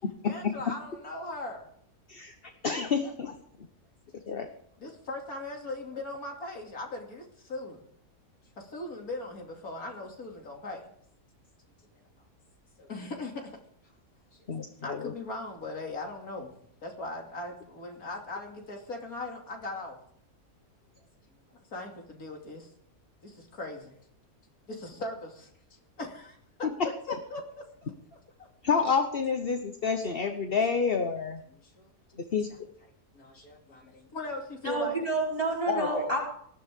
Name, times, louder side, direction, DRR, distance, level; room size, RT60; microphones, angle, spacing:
voice 1, 0.2-1.7 4.8-7.8 8.6-10.8 11.9-12.0 12.8-13.6 14.3-14.5 14.8-16.5 16.8-20.0 21.5-22.7 23.2-23.9 24.7-25.5 26.0-26.7 27.3-28.5 31.5-32.2 32.5-32.6 33.1-35.0, left 2 dB, 85° left, 1 dB, 3.1 m, -39 dB
voice 2, 2.6-3.3 4.3-4.5 14.5-15.1 26.6-26.7 28.6-31.4 32.3-32.5 35.7-35.9, left 5 dB, 45° left, 6 dB, 1.2 m, -28 dB
voice 3, 34.6-36.2, right 2 dB, 25° right, -3 dB, 5.1 m, -29 dB
19.0 x 14.0 x 3.7 m, 0.66 s
omnidirectional pair, 1.5 m